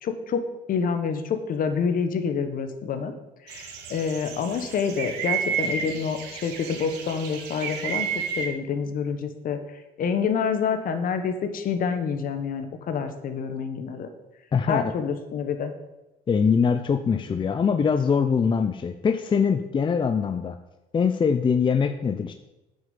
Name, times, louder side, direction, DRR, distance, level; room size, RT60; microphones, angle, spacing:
voice 1, 0.0-0.4 0.7-3.1 3.5-8.1 8.4-9.6 10.0-14.1 14.7-15.7, left 6 dB, 55° left, 8 dB, 1.3 m, -27 dB
sound 1, 3.5-8.5, right 7 dB, 85° right, 1.8 m, -31 dB
voice 2, 14.5-14.9 16.3-20.6 20.9-22.3, left 6 dB, 30° left, 8 dB, 0.6 m, -23 dB
8.9 x 6.6 x 7.2 m, 1.0 s
cardioid pair, 110°, 17 cm